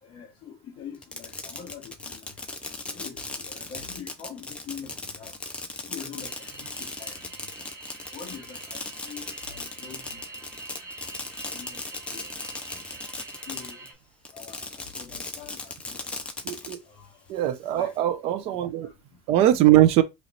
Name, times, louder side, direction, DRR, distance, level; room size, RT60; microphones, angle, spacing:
voice 1, 0.0-2.4 2.9-5.4 5.8-7.5 8.1-10.5 10.9-11.1 11.5-12.8 13.4-13.9 14.3-16.3 16.8-18.0 18.4-19.2, left 7 dB, 35° left, 1.0 m, -45 dB
Fireworks, 0.9-13.9 14.2-16.8, left 3 dB, 10° left, 0.5 m, -37 dB
sound 1, 6.2-13.9, right 3 dB, 25° right, 1.8 m, -45 dB
voice 2, 16.4-16.8 17.3-18.9 19.3-20.0, right 13 dB, 50° right, 0.5 m, -21 dB
3.0 x 3.0 x 3.9 m
cardioid pair, 160°, 13 cm